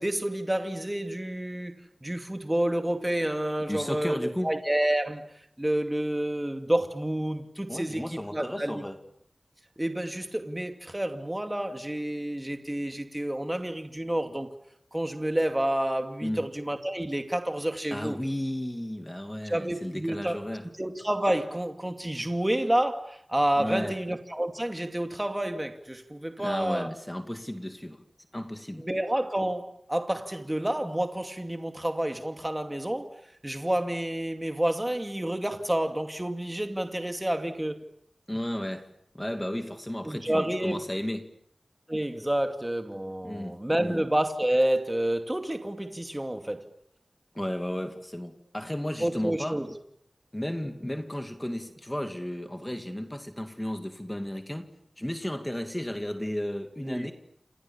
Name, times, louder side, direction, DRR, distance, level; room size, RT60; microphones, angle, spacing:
voice 1, 0.0-8.9 9.8-14.5 14.9-18.2 19.4-20.4 20.8-26.9 28.8-33.1 33.4-37.8 40.0-40.8 41.9-46.6 49.0-49.7 56.8-57.1, right 1 dB, 15° right, 2.5 m, -29 dB
voice 2, 3.7-4.5 7.7-9.0 16.2-16.5 17.9-20.7 23.6-24.0 26.4-28.0 28.3-28.8 38.3-41.3 43.2-44.0 47.3-49.6 50.3-54.7 55.0-57.1, left 1 dB, 15° left, 2.3 m, -34 dB
29.0 x 28.0 x 7.2 m
wide cardioid pair, 65°, 0 cm